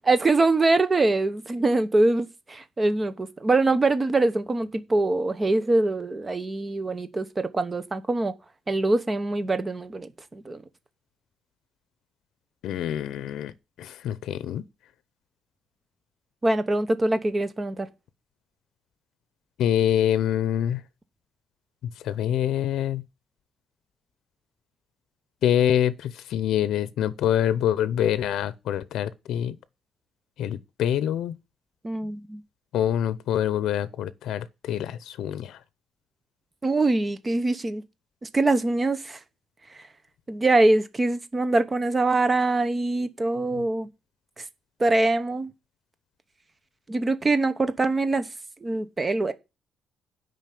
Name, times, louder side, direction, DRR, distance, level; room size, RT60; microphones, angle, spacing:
voice 1, 0.1-8.3 8.7-10.6 16.4-17.9 31.8-32.4 36.6-37.8 38.2-39.2 40.3-43.9 44.8-45.5 46.9-48.3 48.6-49.3, right 2 dB, 20° right, 0.9 m, -23 dB
voice 2, 12.6-13.5 13.8-14.6 19.6-20.8 22.0-23.0 25.4-29.6 30.4-31.4 32.7-35.6, left 10 dB, 85° left, 0.6 m, -25 dB
9.0 x 5.3 x 7.6 m
cardioid pair, 155°, 0 cm